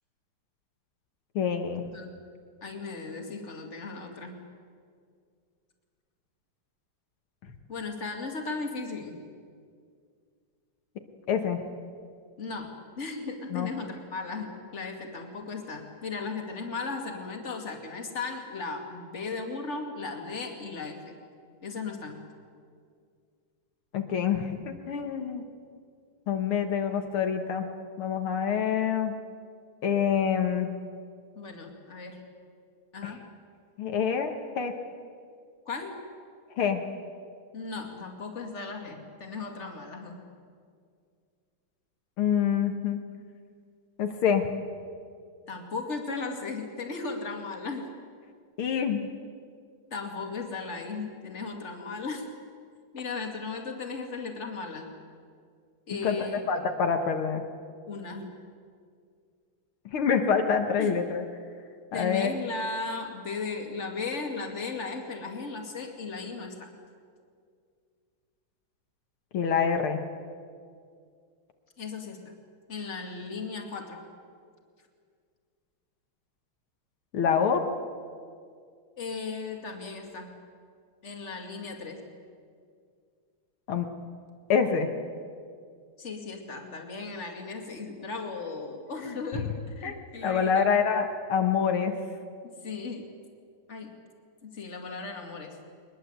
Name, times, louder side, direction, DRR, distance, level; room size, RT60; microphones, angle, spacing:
voice 1, 1.4-1.8 11.3-11.6 13.5-13.7 23.9-25.4 26.3-27.7 28.0-29.2 29.8-30.7 33.0-33.1 33.8-34.7 36.6-36.8 42.2-43.0 44.0-44.5 48.6-49.1 56.0-56.2 56.5-57.4 59.9-61.2 61.9-62.3 69.3-70.0 77.1-77.7 83.7-83.9 84.5-84.9 89.0-89.2 89.8-91.9, left 7 dB, 75° left, 5 dB, 2.2 m, -26 dB
voice 2, 2.6-4.4 7.7-9.2 12.4-21.1 21.6-22.2 31.3-32.2 32.9-33.2 35.7-36.0 37.5-40.2 45.5-47.9 49.9-52.3 52.9-54.9 55.9-56.4 57.9-58.3 60.8-61.0 61.9-66.7 71.8-72.3 72.7-74.0 79.0-80.3 81.0-82.0 86.0-90.7 92.4-93.1 93.7-93.9 94.4-95.6, left 4 dB, 35° left, 3 dB, 2.6 m, -36 dB
22.5 x 21.0 x 8.1 m, 2.2 s
omnidirectional pair, 2.3 m